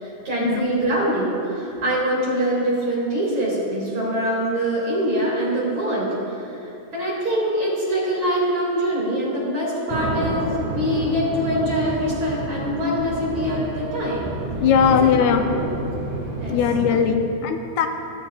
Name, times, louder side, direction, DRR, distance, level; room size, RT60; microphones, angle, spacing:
voice 1, 0.0-14.2 14.9-15.7 16.4-16.6 16.9-17.0, equal, 45° right, -6 dB, 3.0 m, -24 dB
sound 1, 9.9-17.0, right 2 dB, 65° right, 2.7 m, -29 dB
voice 2, 14.6-15.5 16.5-17.9, left 7 dB, 80° left, 5 dB, 2.0 m, -19 dB
16.0 x 8.3 x 2.4 m, 2.7 s
omnidirectional pair, 3.4 m